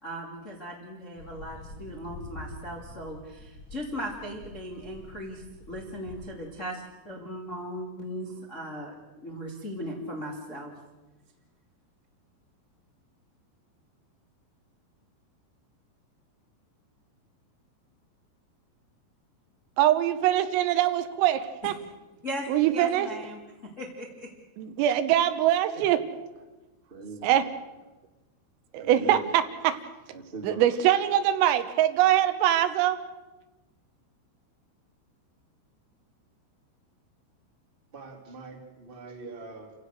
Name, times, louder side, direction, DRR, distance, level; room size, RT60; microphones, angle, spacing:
voice 1, 0.0-10.7 22.2-24.3, equal, 35° left, -1 dB, 1.2 m, -38 dB
sound 1, 1.1-6.3, left 2 dB, 60° left, 1.2 m, -46 dB
voice 2, 19.8-21.7 22.5-23.1 24.6-26.0 27.2-27.4 28.7-29.8 30.4-33.0, right 12 dB, 80° right, 10 dB, 3.6 m, -23 dB
voice 3, 26.8-27.5 28.8-29.3 30.1-30.6 37.9-39.7, right 3 dB, 20° right, 2 dB, 1.6 m, -42 dB
29.0 x 16.0 x 6.6 m, 1.1 s
omnidirectional pair, 5.9 m